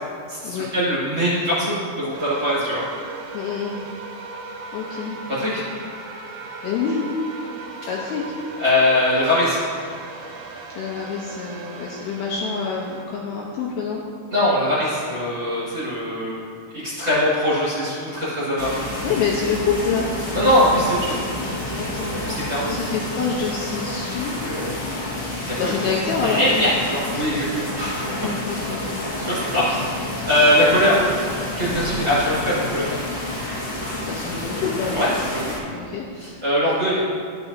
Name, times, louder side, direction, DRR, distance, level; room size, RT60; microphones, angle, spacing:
voice 1, 0.3-2.8 5.3-5.6 8.6-9.6 14.3-16.4 16.7-18.8 20.3-21.2 22.2-22.8 25.3-25.9 26.2-28.3 29.2-29.8 30.2-31.0 31.5-32.9 34.9-35.5 36.2-37.0, left 1 dB, 40° right, -11 dB, 1.8 m, -21 dB
sound 1, 2.1-13.1, right 3 dB, 80° right, 2.6 m, -37 dB
voice 2, 3.3-3.8 4.7-5.2 6.6-7.0 7.9-8.4 10.8-14.0 19.0-20.1 21.8-24.5 25.6-26.4 28.2-29.0 34.0-35.0 35.7-36.1, left 6 dB, 85° left, -3 dB, 2.2 m, -27 dB
sound 2, 18.6-35.6, left 1 dB, 65° left, 1.1 m, -29 dB
Slam, 31.7-33.6, right 2 dB, 65° right, 1.7 m, -35 dB
12.5 x 5.9 x 2.7 m, 2.2 s
omnidirectional pair, 5.1 m